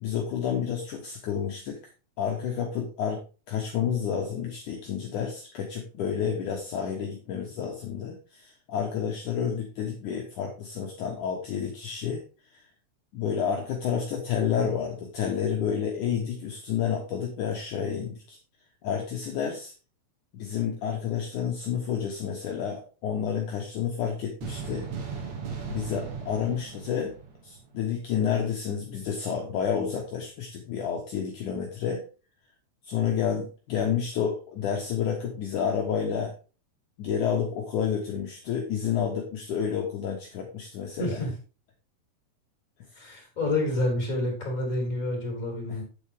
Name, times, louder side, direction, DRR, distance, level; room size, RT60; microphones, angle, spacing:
voice 1, 0.0-1.8 2.2-12.2 12.5-12.6 13.1-18.4 18.8-19.7 20.3-24.9 25.7-27.2 27.4-32.0 32.8-36.3 37.0-41.2, left 7 dB, 65° left, 0 dB, 2.3 m, -30 dB
sound 1, 24.4-27.8, right 6 dB, 55° right, 2.5 m, -37 dB
voice 2, 41.0-41.3 43.0-45.8, left 1 dB, 20° left, 1 dB, 3.8 m, -28 dB
9.1 x 8.0 x 3.5 m, 0.34 s
omnidirectional pair, 4.4 m